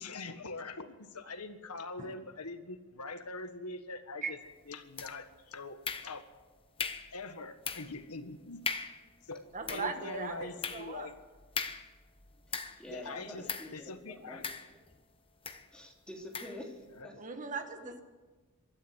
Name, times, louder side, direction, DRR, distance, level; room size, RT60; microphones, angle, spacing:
voice 1, 0.0-4.4 4.7-6.3 7.1-8.6 9.3-11.2 12.9-14.5 16.9-17.2, left 3 dB, 90° left, 8 dB, 1.6 m, -43 dB
sound 1, 5.0-5.4 5.8-6.4 6.8-7.2 7.6-8.0 8.3-8.4 8.6-9.1 9.5-12.9 13.5-13.8 14.4-15.0 15.4-15.7 16.3-16.6, left 5 dB, 25° left, 1.1 m, -39 dB
voice 2, 9.5-11.1 12.7-12.8 17.2-18.0, right 4 dB, 35° right, 6 dB, 1.7 m, -39 dB
voice 3, 12.5-14.4 15.7-17.1 17.8-17.9, left 1 dB, 5° left, -1 dB, 3.4 m, -47 dB
24.5 x 13.0 x 8.2 m, 1.3 s
head